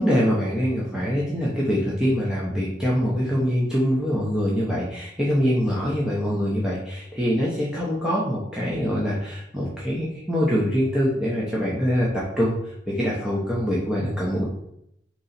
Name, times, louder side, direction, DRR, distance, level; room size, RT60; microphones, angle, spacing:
voice 1, 0.0-14.4, equal, 5° right, -6 dB, 0.7 m, -24 dB
3.9 x 3.1 x 4.0 m, 0.78 s
head